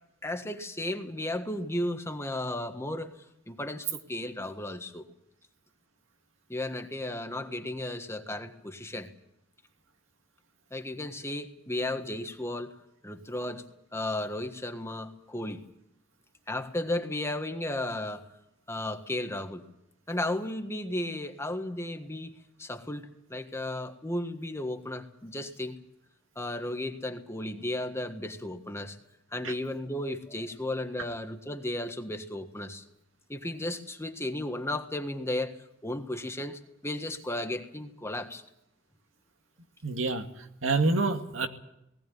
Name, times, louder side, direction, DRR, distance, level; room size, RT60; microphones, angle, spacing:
voice 1, 0.2-3.1 3.5-5.1 6.5-9.1 10.7-12.7 13.0-13.6 13.9-15.6 16.5-18.3 18.7-19.6 20.1-25.8 26.3-29.0 29.3-32.8 33.3-35.5 35.8-38.4, left 1 dB, 15° left, 6 dB, 1.6 m, -34 dB
voice 2, 39.8-40.2 40.6-41.5, right 3 dB, 80° right, 5 dB, 2.2 m, -26 dB
19.5 x 17.0 x 9.4 m, 0.79 s
head